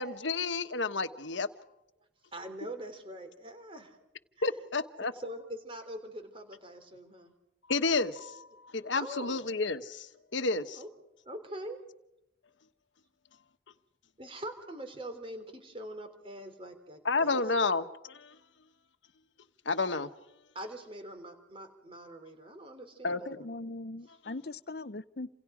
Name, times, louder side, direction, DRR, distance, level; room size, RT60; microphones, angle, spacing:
voice 1, 0.0-1.5 4.4-5.1 7.7-10.8 17.0-18.3 19.6-20.1 23.0-23.4, left 3 dB, 70° left, 1.3 m, -31 dB
voice 2, 2.3-4.0 4.4-4.5 5.0-7.3 8.5-8.6 8.9-9.4 10.7-10.9 11.3-11.8 14.2-17.4 20.6-23.5, right 1 dB, 25° right, 3.4 m, -43 dB
voice 3, 23.3-25.3, left 2 dB, 50° left, 0.8 m, -40 dB
29.0 x 27.5 x 5.0 m
head